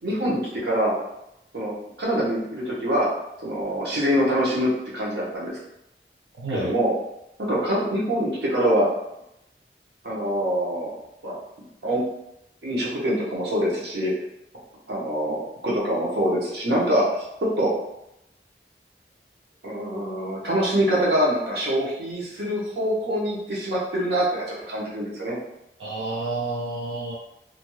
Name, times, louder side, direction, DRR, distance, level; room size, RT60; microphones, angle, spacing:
voice 1, 0.0-0.9 1.5-3.1 3.4-5.6 6.5-6.9 7.4-8.9 10.0-10.9 11.2-11.4 11.8-12.0 12.6-14.1 14.9-17.2 17.6-17.7 19.6-25.4, equal, 70° right, -5 dB, 0.9 m, -24 dB
voice 2, 6.4-6.7 25.8-27.2, right 2 dB, 90° right, -5 dB, 0.5 m, -29 dB
2.6 x 2.2 x 3.1 m, 0.85 s
head